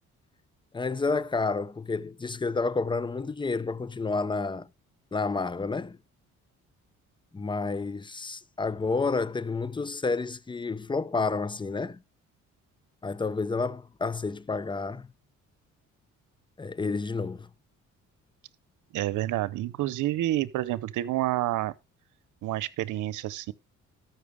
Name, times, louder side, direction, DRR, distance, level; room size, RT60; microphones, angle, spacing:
voice 1, 0.7-4.7 5.1-6.0 7.3-12.0 13.0-15.1 16.6-17.5, left 4 dB, 15° left, 0.7 m, -30 dB
voice 2, 18.9-21.7 22.4-23.5, right 15 dB, 85° right, 0.8 m, -29 dB
13.5 x 5.9 x 4.9 m
cardioid pair, 90°, 30 cm